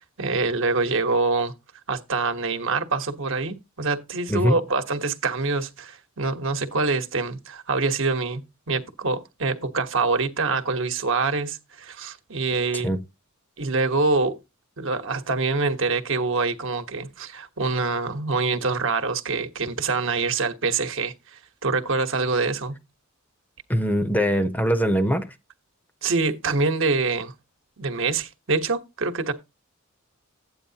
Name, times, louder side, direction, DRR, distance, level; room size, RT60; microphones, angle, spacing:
voice 1, 0.0-1.5 1.9-13.0 13.6-14.4 14.8-22.8 26.0-27.3 27.8-29.3, right 3 dB, 65° right, 1.2 m, -25 dB
voice 2, 4.3-4.6 12.7-13.0 23.7-25.3, equal, 10° left, 0.7 m, -22 dB
12.5 x 8.8 x 2.8 m
head